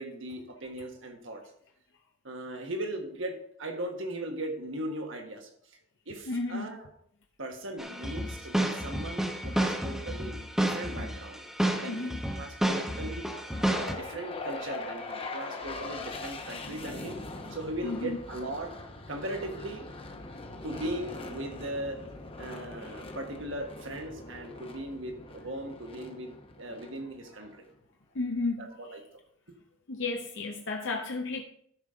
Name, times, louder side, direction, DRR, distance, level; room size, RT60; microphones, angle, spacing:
voice 1, 0.0-1.4 2.2-5.5 6.1-6.9 7.4-11.4 11.7-13.3 13.7-17.2 17.5-18.7 19.1-19.9 20.6-22.0 22.4-27.6 28.6-29.0, right 1 dB, 65° right, 4 dB, 1.5 m, -38 dB
voice 2, 6.3-6.8 9.6-9.7 11.8-12.2 17.8-18.2 22.8-22.9 28.1-28.7 29.9-31.4, left 3 dB, 65° left, 2 dB, 0.7 m, -33 dB
sound 1, 7.8-13.9, right 1 dB, ahead, 0.9 m, -30 dB
sound 2, 13.5-27.6, left 2 dB, 30° left, 0.9 m, -42 dB
13.0 x 5.3 x 3.8 m, 0.65 s
head